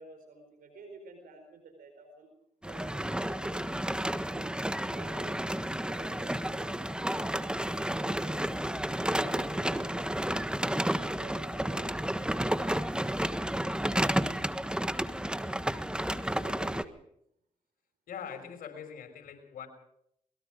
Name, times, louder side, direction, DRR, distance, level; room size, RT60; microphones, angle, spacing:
voice 1, 0.0-2.3 2.6-3.7 4.2-4.5 4.8-8.4 9.0-10.1 10.8-12.0 15.2-17.0, right 3 dB, 80° right, 6 dB, 4.7 m, -51 dB
sound 1, 2.6-16.8, right 1 dB, 5° right, 1.4 m, -31 dB
voice 2, 18.1-19.7, left 7 dB, 75° left, 6 dB, 5.7 m, -43 dB
23.5 x 22.0 x 5.1 m, 0.74 s
supercardioid pair, 50°, 15 cm